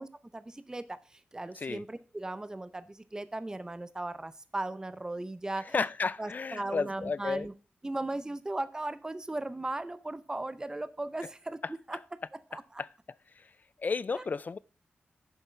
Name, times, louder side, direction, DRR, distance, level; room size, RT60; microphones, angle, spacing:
voice 1, 0.0-5.8 6.2-7.5 7.8-12.0 12.5-12.8 14.1-14.2, right 2 dB, 15° right, 0.6 m, -37 dB
voice 2, 5.7-7.5 12.8-12.9 13.4-13.5 13.8-14.6, left 4 dB, 45° left, 0.4 m, -32 dB
7.2 x 7.1 x 5.6 m
wide cardioid pair, 95°, 4 cm